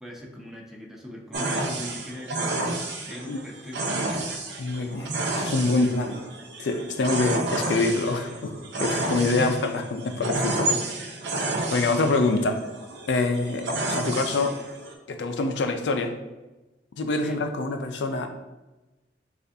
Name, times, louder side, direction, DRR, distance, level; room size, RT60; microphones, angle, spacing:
voice 1, 0.0-4.3 9.0-9.5 17.2-17.4, equal, 5° right, -2 dB, 0.6 m, -39 dB
sound 1, 1.3-14.9, right 2 dB, 70° right, 0.7 m, -30 dB
voice 2, 4.6-6.2 6.6-8.5 8.8-11.1 11.7-12.6 13.1-14.6 15.1-16.1 17.0-18.3, left 3 dB, 75° left, 6 dB, 0.4 m, -25 dB
6.6 x 2.5 x 2.7 m, 1.1 s
head